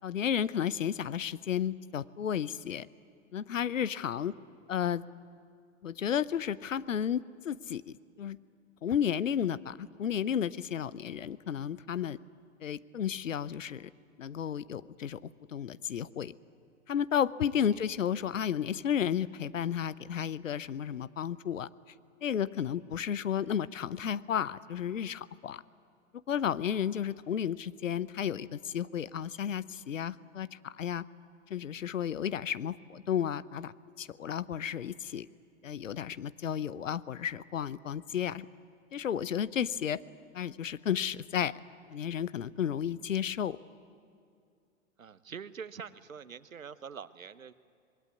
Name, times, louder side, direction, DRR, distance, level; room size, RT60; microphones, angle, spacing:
voice 1, 0.0-2.9 3.3-4.3 4.7-5.0 5.8-8.4 8.8-12.2 12.6-13.9 14.2-15.2 15.5-16.3 16.9-21.7 22.2-25.6 26.3-31.0 31.5-35.3 35.6-38.5 38.9-40.0 40.3-41.5 41.9-43.6, left 9 dB, 70° left, 18 dB, 0.8 m, -32 dB
voice 2, 45.0-47.5, right 6 dB, 75° right, 15 dB, 1.0 m, -45 dB
25.5 x 21.0 x 9.4 m, 2.4 s
figure-of-eight pair, 100°, 40 cm